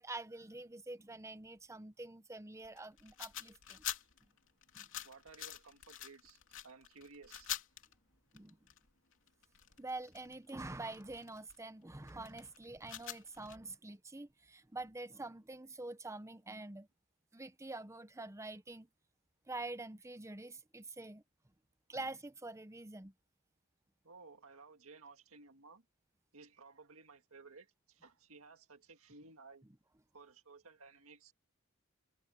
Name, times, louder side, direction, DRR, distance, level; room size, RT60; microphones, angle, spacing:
voice 1, 0.0-3.8 4.2-4.3 4.7-4.9 8.3-8.6 9.8-16.9 17.3-18.9 19.5-21.2 21.9-23.1, right 2 dB, 15° right, 0.8 m, -46 dB
sound 1, 2.6-7.9 8.3-11.6 12.1-13.6, left 11 dB, 65° left, 3.1 m, -46 dB
voice 2, 5.0-7.5 9.7-9.8 24.0-25.8 26.3-29.7 30.1-31.3, right 4 dB, 70° right, 2.0 m, -57 dB
head